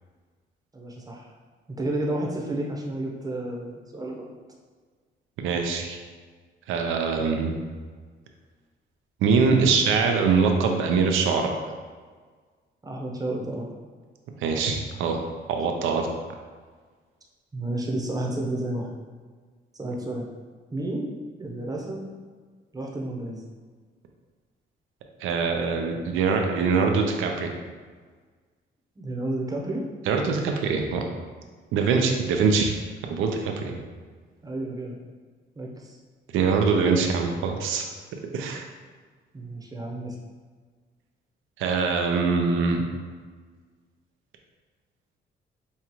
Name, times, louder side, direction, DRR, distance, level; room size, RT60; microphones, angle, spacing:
voice 1, 0.7-1.3 1.8-4.3 12.8-13.7 17.5-18.9 19.7-20.3 20.7-22.1 22.7-23.4 29.0-29.9 34.4-35.0 35.6-36.0 39.3-40.2, right 1 dB, 20° right, -1 dB, 0.8 m, -31 dB
voice 2, 5.4-6.0 6.7-7.6 9.2-11.5 14.4-15.2 15.5-16.1 25.2-27.5 30.1-31.0 31.7-32.7 33.1-33.8 36.3-37.9 38.3-38.6 41.6-42.8, right 5 dB, 85° right, 3 dB, 0.6 m, -23 dB
5.4 x 2.4 x 3.0 m, 1.5 s
cardioid pair, 90°, 20 cm